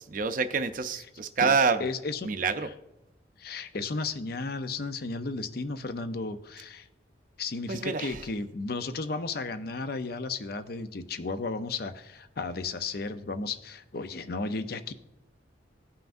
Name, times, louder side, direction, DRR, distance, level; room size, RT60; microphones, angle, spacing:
voice 1, 0.1-1.8 2.2-2.7 7.7-8.2, right 5 dB, 45° right, 9 dB, 0.5 m, -27 dB
voice 2, 1.8-2.3 2.6-2.7 3.4-6.9 7.4-14.9, left 3 dB, 50° left, 10 dB, 0.6 m, -34 dB
17.0 x 5.7 x 2.6 m, 0.91 s
head